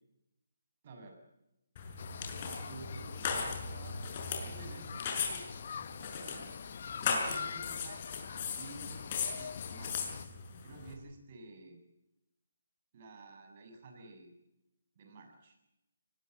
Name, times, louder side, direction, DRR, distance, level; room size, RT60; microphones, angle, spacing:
voice 1, 0.8-1.2 2.6-4.0 4.3-5.5 6.0-6.6 7.0-8.0 8.4-10.2 10.6-11.8 12.9-14.3 15.0-15.6, right 3 dB, 45° right, 5 dB, 7.3 m, -51 dB
sound 1, 1.8-10.9, left 5 dB, 35° left, 6.2 m, -38 dB
sound 2, 2.0-10.3, left 7 dB, 50° left, 1.3 m, -45 dB
24.5 x 20.0 x 9.2 m, 0.89 s
figure-of-eight pair, 150°, 0 cm